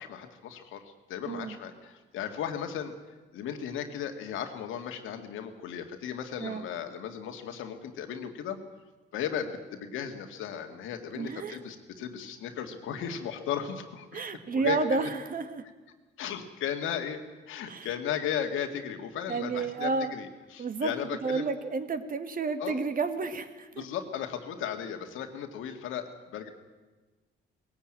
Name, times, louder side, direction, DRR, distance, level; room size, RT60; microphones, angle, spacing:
voice 1, 0.0-3.0 3.3-8.6 9.1-14.2 14.5-15.1 16.2-21.5 22.6-22.8 23.8-26.5, left 8 dB, 85° left, 6 dB, 2.0 m, -36 dB
voice 2, 1.2-1.6 6.4-6.6 11.1-11.6 14.1-15.6 17.7-17.9 19.3-20.1 20.6-20.9 21.2-23.8, right 4 dB, 45° right, 9 dB, 1.8 m, -31 dB
18.5 x 16.5 x 8.9 m, 1.3 s
cardioid pair, 90°, 20 cm